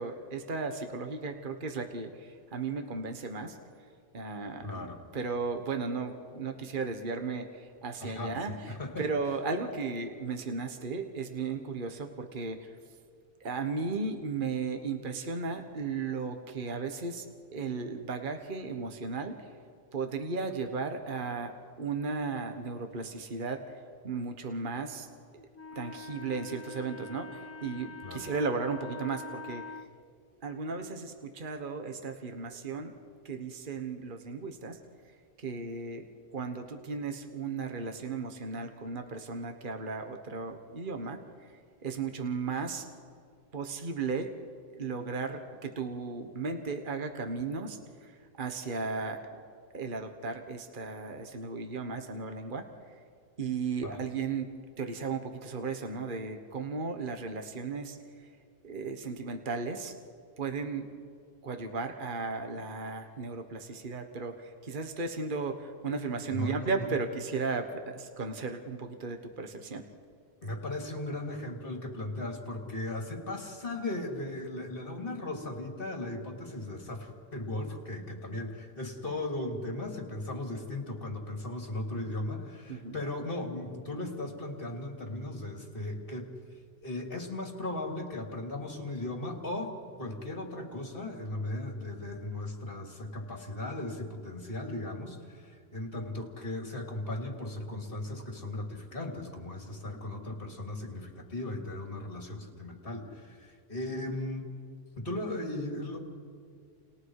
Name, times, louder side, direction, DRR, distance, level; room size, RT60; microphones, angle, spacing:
voice 1, 0.0-3.6 4.1-12.8 13.4-17.3 17.5-19.5 19.9-25.1 25.3-29.8 30.4-32.9 33.2-34.8 35.4-36.0 36.3-41.5 41.8-42.8 43.5-44.3 44.7-49.4 49.7-53.0 53.4-54.5 54.8-58.3 58.6-59.9 60.4-60.9 61.4-69.8 82.7-83.0, right 4 dB, 40° right, 5 dB, 1.5 m, -35 dB
voice 2, 4.6-5.0 8.0-9.1 28.0-28.3 53.8-54.0 66.3-66.9 70.4-86.3 86.8-104.5 105.0-106.0, left 2 dB, 45° left, 2 dB, 3.3 m, -37 dB
Wind instrument woodwind instrument, 25.5-29.9, left 3 dB, 20° left, 0.4 m, -44 dB
30.0 x 30.0 x 4.9 m, 2.2 s
omnidirectional pair, 1.3 m